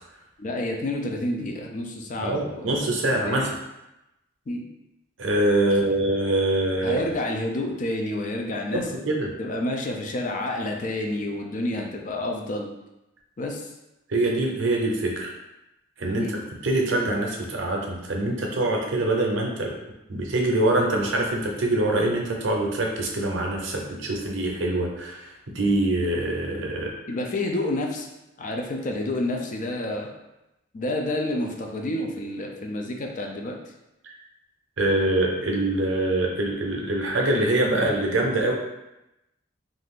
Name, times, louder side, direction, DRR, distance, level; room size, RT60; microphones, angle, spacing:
voice 1, 0.4-2.7 3.1-3.4 4.5-4.7 5.7-5.8 6.8-8.8 9.4-12.7 13.4-13.7 16.2-16.4 27.1-28.1 28.4-30.1 30.7-33.6, left 1 dB, 40° left, 2 dB, 0.4 m, -29 dB
voice 2, 2.2-3.5 5.2-7.0 8.7-9.3 14.1-15.3 16.0-19.7 20.1-25.3 25.5-26.9 34.0-34.1 34.8-38.5, right 1 dB, 70° right, 0 dB, 0.6 m, -24 dB
2.6 x 2.4 x 3.6 m, 0.94 s
head